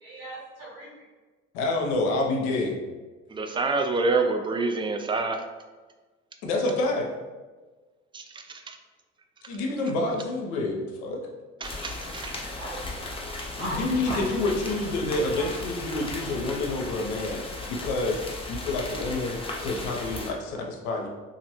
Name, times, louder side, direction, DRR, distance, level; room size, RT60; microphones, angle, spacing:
voice 1, 0.0-1.0 12.6-12.8 13.6-14.4 15.4-15.5, right 1 dB, 70° right, -6 dB, 1.2 m, -37 dB
voice 2, 1.5-2.8 6.4-7.1 9.5-11.2 13.6-18.2 18.5-21.1, left 2 dB, 70° left, 1 dB, 0.7 m, -28 dB
voice 3, 3.3-5.4 8.1-8.8 11.6-12.3, right 3 dB, 15° right, 5 dB, 0.3 m, -27 dB
sound 1, 11.6-20.3, left 2 dB, 15° left, 0.8 m, -36 dB
3.0 x 2.5 x 2.9 m, 1.3 s
hypercardioid pair, 55°, 35 cm